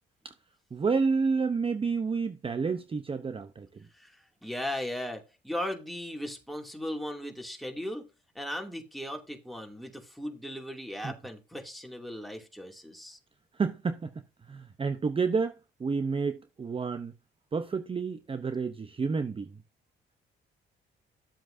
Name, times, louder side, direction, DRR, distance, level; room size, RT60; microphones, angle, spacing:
voice 1, 0.7-3.7 11.0-11.1 13.5-14.1 14.5-17.1 17.5-19.6, right 5 dB, 25° right, 0.8 m, -30 dB
voice 2, 4.4-8.1 8.3-13.2, left 1 dB, ahead, 2.5 m, -37 dB
11.5 x 7.5 x 2.7 m
cardioid pair, 90°, 20 cm